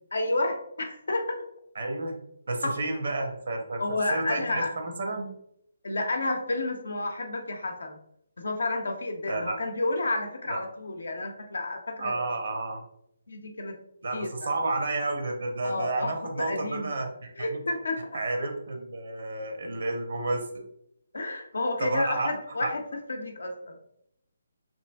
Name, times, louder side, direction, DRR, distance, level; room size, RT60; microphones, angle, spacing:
voice 1, 0.1-1.4 2.6-2.7 3.8-4.7 5.8-8.0 8.4-12.2 13.3-13.8 14.1-14.5 15.6-16.9 17.4-18.0 21.1-22.8 23.1-23.8, left 2 dB, 70° left, 4 dB, 0.5 m, -30 dB
voice 2, 1.8-2.1 2.5-3.8 4.1-5.3 9.3-9.6 10.5-10.6 12.0-12.8 14.0-17.6 18.1-20.4 21.8-22.3 22.6-22.7, right 2 dB, 65° right, 3 dB, 0.7 m, -31 dB
3.0 x 2.5 x 2.2 m, 0.72 s
figure-of-eight pair, 145°, 0 cm